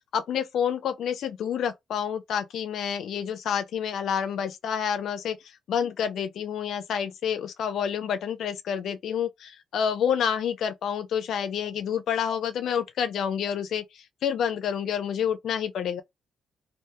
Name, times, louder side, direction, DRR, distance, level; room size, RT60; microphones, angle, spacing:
voice 1, 0.1-5.4 5.7-16.0, left 8 dB, 65° left, 0.5 m, -28 dB
2.8 x 2.5 x 3.4 m
cardioid pair, 125°, 0 cm